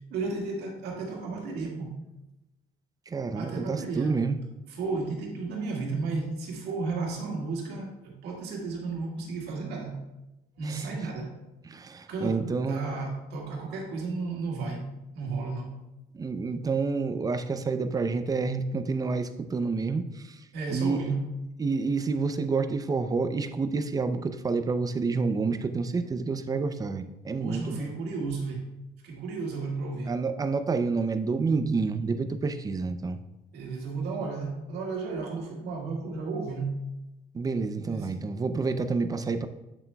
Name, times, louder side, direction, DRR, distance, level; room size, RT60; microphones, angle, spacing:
voice 1, 0.1-2.0 3.3-4.2 4.7-10.0 10.6-11.4 12.1-14.9 15.2-15.8 20.5-21.3 27.4-28.7 29.0-30.2 33.5-36.8 37.9-38.2, right 4 dB, 80° right, -1 dB, 1.8 m, -33 dB
voice 2, 3.1-4.4 10.7-10.8 11.7-12.9 16.2-20.0 20.7-21.0 21.6-27.9 30.1-33.2 37.3-39.5, right 4 dB, 20° right, 10 dB, 0.5 m, -28 dB
8.2 x 7.3 x 2.3 m, 0.97 s
cardioid pair, 110°, 17 cm